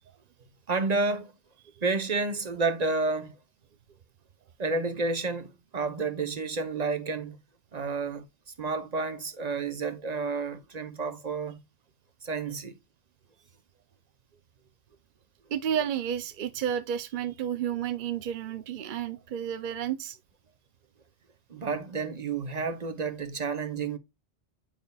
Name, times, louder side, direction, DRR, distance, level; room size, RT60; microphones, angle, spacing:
voice 1, 0.7-1.3 1.8-3.4 4.6-7.4 7.7-8.2 8.6-11.6 12.2-12.8 21.5-24.0, right 3 dB, 40° right, 1.0 m, -30 dB
voice 2, 15.5-20.2, right 9 dB, 55° right, 0.7 m, -31 dB
9.0 x 5.4 x 2.3 m
omnidirectional pair, 1.1 m